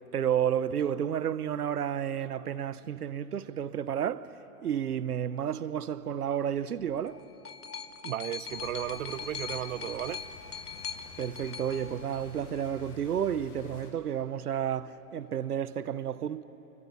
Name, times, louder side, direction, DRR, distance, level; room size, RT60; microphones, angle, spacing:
voice 1, 0.0-4.4 4.6-7.2 11.2-16.4, right 9 dB, 85° right, 0.9 m, -31 dB
sound 1, 6.8-12.8 13.7-13.8, left 6 dB, 90° left, 1.4 m, -42 dB
voice 2, 8.0-10.2, right 12 dB, 60° right, 1.0 m, -35 dB
sound 2, 8.5-13.9, left 5 dB, 60° left, 6.1 m, -50 dB
25.5 x 22.0 x 8.7 m
hypercardioid pair, 125°, 44 cm